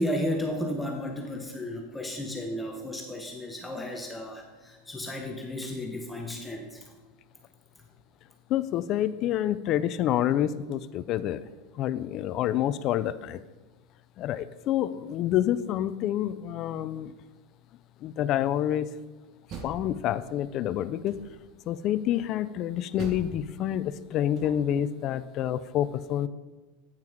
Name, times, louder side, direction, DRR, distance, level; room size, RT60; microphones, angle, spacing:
voice 1, 0.0-6.8, left 1 dB, 10° left, 2 dB, 0.8 m, -33 dB
voice 2, 8.5-11.5 11.8-13.4 14.2-17.1 18.0-18.9 19.6-21.2 21.7-26.3, left 11 dB, 40° left, 15 dB, 0.3 m, -28 dB
Door, 19.2-20.5 21.0-21.6 23.0-24.9, right 3 dB, 40° right, 1.2 m, -43 dB
8.9 x 5.9 x 4.5 m, 1.2 s
supercardioid pair, 140°, 0 cm